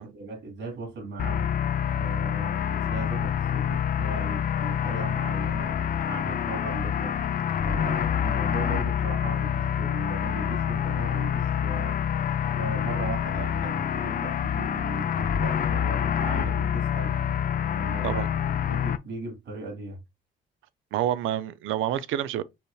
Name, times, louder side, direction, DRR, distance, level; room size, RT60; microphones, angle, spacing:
voice 1, 0.0-1.5 1.9-5.8 6.1-7.2 7.6-11.9 12.6-17.1 17.7-18.2 18.6-20.0, right 3 dB, 65° right, 2.6 m, -37 dB
sound 1, 1.2-19.0, left 9 dB, 45° left, 0.5 m, -27 dB
voice 2, 20.9-22.4, right 11 dB, 85° right, 0.5 m, -28 dB
5.5 x 3.2 x 2.3 m
cardioid pair, 90°, 20 cm